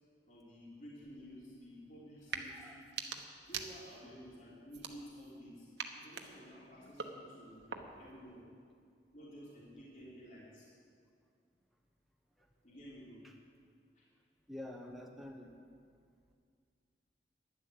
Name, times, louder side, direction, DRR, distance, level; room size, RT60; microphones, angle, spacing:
voice 1, 0.3-2.9 3.5-5.7 5.9-8.4 9.1-10.7 12.6-13.3 14.0-14.1, equal, 45° left, -7 dB, 3.4 m, -53 dB
sound 1, 2.2-2.5 2.8-4.1 4.7-5.4 5.8-8.1, right 6 dB, 80° right, 1.1 m, -45 dB
voice 2, 2.3-2.8 6.8-6.9 12.4-12.5 13.2-13.3 14.5-15.6, left 1 dB, ahead, 1 dB, 0.9 m, -49 dB
12.0 x 11.0 x 8.1 m, 2.2 s
head